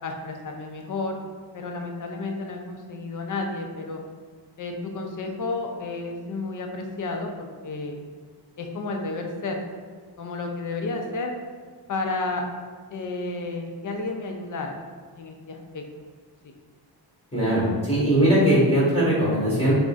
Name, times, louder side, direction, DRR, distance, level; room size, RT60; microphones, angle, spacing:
voice 1, 0.0-1.2 1.5-4.0 4.6-8.0 8.6-9.6 10.2-11.3 11.9-12.5 12.9-14.8 15.1-15.8 16.4-16.5, left 3 dB, 45° left, 3 dB, 0.4 m, -31 dB
voice 2, 17.3-19.8, right 1 dB, 10° left, -8 dB, 1.5 m, -20 dB
3.6 x 2.1 x 2.4 m, 1.5 s
cardioid pair, 75°, 46 cm